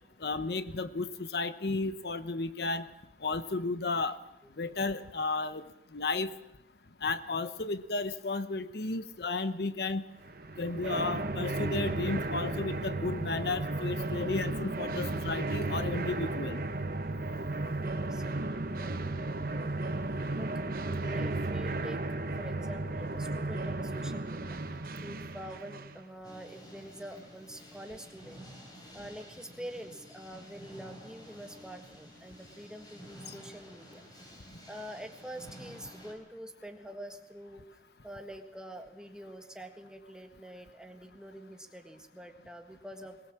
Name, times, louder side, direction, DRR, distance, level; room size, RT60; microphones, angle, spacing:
voice 1, 0.2-2.9 3.2-4.2 4.6-5.6 5.9-6.3 7.0-10.0 10.6-16.6, left 3 dB, 65° left, 12 dB, 0.9 m, -33 dB
sound 1, 10.2-26.0, right 2 dB, 50° right, 1.0 m, -34 dB
voice 2, 17.8-19.7 20.3-20.5 20.8-22.0 22.4-28.5 28.9-34.0 34.7-43.2, equal, 5° right, 4 dB, 1.6 m, -46 dB
sound 2, 26.2-36.1, equal, 20° left, 4.4 m, -51 dB
22.0 x 20.0 x 7.5 m, 0.92 s
head